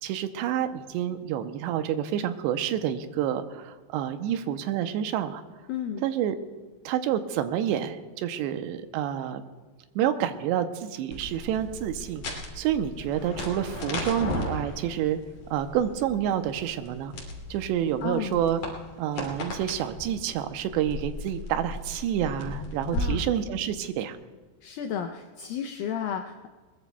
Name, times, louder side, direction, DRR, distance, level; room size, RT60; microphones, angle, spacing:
voice 1, 0.0-5.4 6.0-6.4 6.9-9.5 10.0-15.2 15.5-17.1 17.5-18.6 19.0-24.2, right 10 dB, 85° right, 9 dB, 2.9 m, -28 dB
voice 2, 5.7-6.1 18.0-18.4 22.9-23.3 24.6-26.5, left 8 dB, 90° left, 5 dB, 2.0 m, -33 dB
sound 1, 11.1-23.0, left 2 dB, 45° left, 3.4 m, -37 dB
21.0 x 21.0 x 2.3 m, 1.4 s
omnidirectional pair, 4.9 m